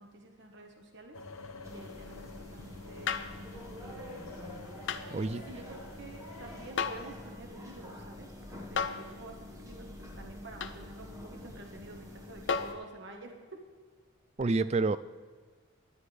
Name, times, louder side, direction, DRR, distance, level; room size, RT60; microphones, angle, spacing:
voice 1, 0.0-4.6 5.0-8.3 8.6-13.6, right 2 dB, 55° right, 3 dB, 1.3 m, -49 dB
sound 1, 1.1-6.7, left 3 dB, 75° left, 1.0 m, -49 dB
sound 2, 1.6-12.7, left 1 dB, 15° right, 1.4 m, -47 dB
sound 3, 3.1-3.4 4.9-5.1 6.8-7.1 8.8-9.1 10.6-10.8 12.5-12.8 14.4-14.5, left 6 dB, 60° left, 0.6 m, -33 dB
voice 2, 5.1-5.4 14.4-15.0, right 3 dB, 30° right, 15 dB, 0.3 m, -28 dB
18.5 x 11.0 x 3.3 m, 1.5 s
head